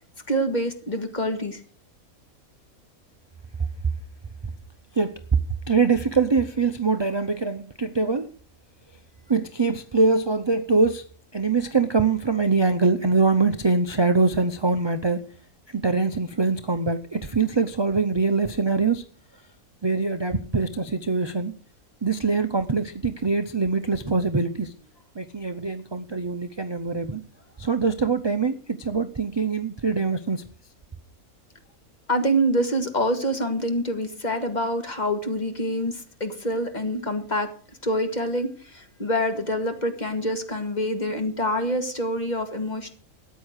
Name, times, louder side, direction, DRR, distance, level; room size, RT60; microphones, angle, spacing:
voice 1, 0.3-1.6 32.1-37.5 37.8-43.0, equal, 30° left, 6 dB, 1.9 m, -26 dB
voice 2, 5.7-8.3 9.3-15.2 15.7-19.0 19.8-21.5 22.0-24.7 25.1-27.2 27.6-30.4, right 4 dB, 30° right, 9 dB, 0.4 m, -23 dB
13.5 x 9.2 x 6.4 m, 0.43 s
omnidirectional pair, 1.5 m